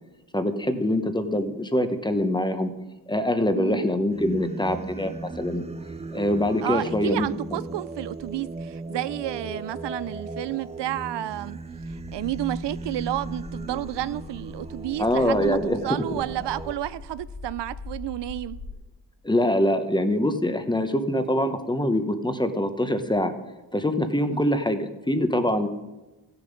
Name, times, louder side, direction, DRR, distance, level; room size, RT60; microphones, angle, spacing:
voice 1, 0.3-2.7 3.1-5.6 6.1-7.6 15.0-16.2 19.2-23.3 23.7-25.7, left 1 dB, 10° left, 0.8 m, -24 dB
voice 2, 3.5-3.9 6.6-11.6 11.9-18.6 24.2-24.4, right 14 dB, 75° right, 0.5 m, -31 dB
Singing, 4.1-16.8, right 3 dB, 15° right, 0.4 m, -37 dB
sound 1, 11.6-18.7, left 3 dB, 50° left, 3.0 m, -42 dB
15.0 x 6.9 x 5.2 m
wide cardioid pair, 110°, 42 cm